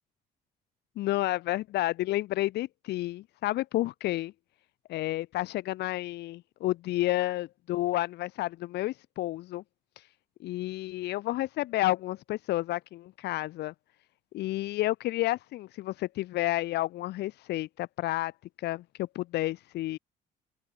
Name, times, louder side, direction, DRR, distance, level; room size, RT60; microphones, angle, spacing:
voice 1, 1.0-4.3 4.9-9.6 10.4-13.7 14.3-18.3 18.6-20.0, left 16 dB, 80° left, 7.7 m, -30 dB
open air
cardioid pair, 110°, 17 cm